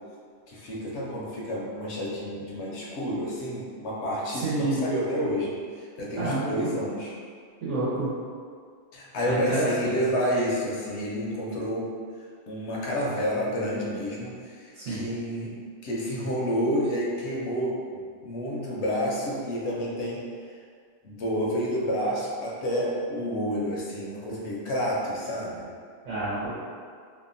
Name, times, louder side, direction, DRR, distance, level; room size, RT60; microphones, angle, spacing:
voice 1, 0.5-7.2 8.9-11.9 12.5-17.8 18.2-20.2 21.0-25.7, equal, 65° left, -4 dB, 0.8 m, -29 dB
voice 2, 4.3-4.8 6.2-6.5 7.6-8.1 9.3-9.9 14.8-15.0 26.0-26.5, right 2 dB, 75° right, -11 dB, 1.0 m, -28 dB
2.7 x 2.2 x 2.5 m, 2.1 s
omnidirectional pair, 1.3 m